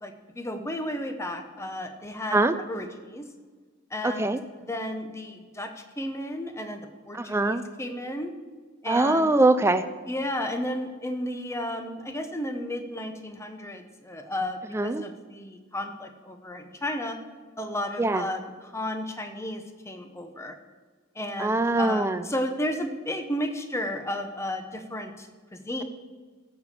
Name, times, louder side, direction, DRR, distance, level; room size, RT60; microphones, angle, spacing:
voice 1, 0.0-3.2 3.9-5.7 6.0-8.3 8.8-9.3 10.1-17.2 17.6-20.6 21.2-25.8, left 1 dB, 15° left, 6 dB, 0.8 m, -33 dB
voice 2, 7.1-7.6 8.9-9.8 14.7-15.0 18.0-18.2 21.4-22.2, right 2 dB, 10° right, 10 dB, 0.3 m, -22 dB
15.0 x 5.1 x 6.6 m, 1.4 s
head